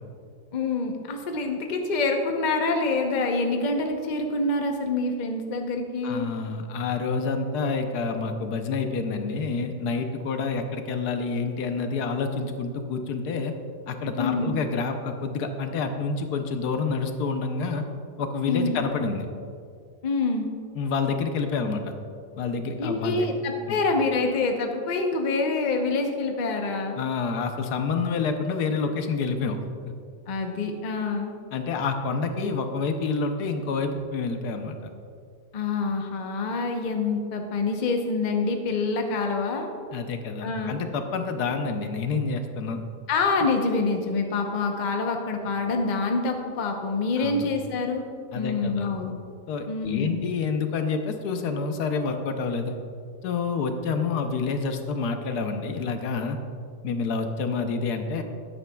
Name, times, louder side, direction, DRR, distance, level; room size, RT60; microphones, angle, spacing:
voice 1, 0.5-6.3 14.2-14.6 18.5-18.8 20.0-20.5 22.8-27.0 30.3-31.3 35.5-39.7 40.4-40.8 43.1-48.0 48.3-49.1 49.7-50.2, left 3 dB, 40° left, 3 dB, 0.8 m, -26 dB
voice 2, 6.0-13.5 13.9-17.9 18.2-19.3 20.8-22.0 22.4-23.3 23.7-23.8 27.0-29.6 31.5-34.8 39.9-42.8 47.2-47.5 48.3-48.9 49.5-52.7 53.2-56.4 56.8-58.2, left 4 dB, 75° left, 6 dB, 1.3 m, -28 dB
13.5 x 9.9 x 2.3 m, 2.3 s
omnidirectional pair, 1.7 m